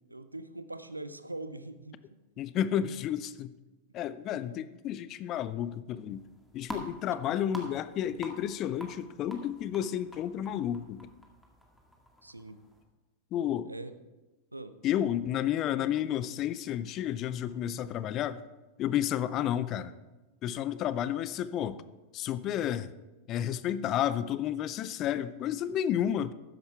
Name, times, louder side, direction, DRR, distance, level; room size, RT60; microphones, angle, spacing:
voice 1, 0.0-2.2 4.3-4.6 7.3-7.4 12.2-12.6 13.7-13.9 14.5-14.7, right 2 dB, 85° right, 12 dB, 0.6 m, -42 dB
voice 2, 2.4-3.5 3.9-6.2 6.5-11.1 13.3-13.7 14.8-18.4 18.8-19.9 20.4-21.8 22.1-22.9 23.3-26.3, left 10 dB, 35° left, 15 dB, 0.5 m, -31 dB
sound 1, 6.1-12.8, equal, ahead, 1.8 m, -48 dB
13.0 x 10.0 x 3.4 m, 1.1 s
figure-of-eight pair, 90°, 0 cm